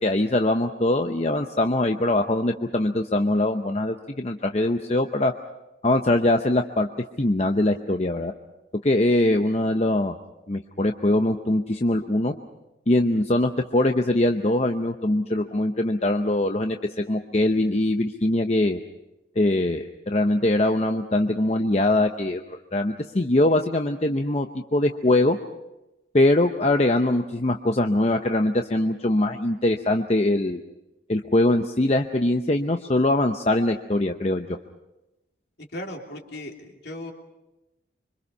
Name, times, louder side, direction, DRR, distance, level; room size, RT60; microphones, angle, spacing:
voice 1, 0.0-5.3 5.8-6.9 7.2-8.3 8.8-10.2 10.5-12.3 12.9-18.8 19.4-24.5 24.7-25.4 26.1-30.6 31.1-34.5, left 1 dB, 35° left, 5 dB, 0.8 m, -22 dB
voice 2, 35.6-37.1, left 1 dB, 60° left, 1 dB, 3.2 m, -37 dB
26.0 x 25.0 x 5.5 m, 0.96 s
head